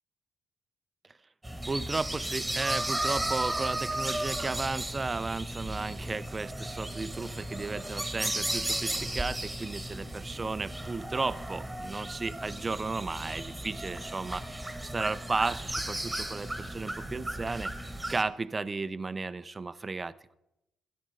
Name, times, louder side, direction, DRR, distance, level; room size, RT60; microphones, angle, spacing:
sound 1, 1.4-18.2, right 1 dB, 10° right, 1.5 m, -35 dB
voice 1, 1.7-17.7 18.1-20.3, right 3 dB, 25° right, 15 dB, 0.6 m, -34 dB
13.5 x 10.5 x 5.1 m, 0.86 s
cardioid pair, 90°, 0 cm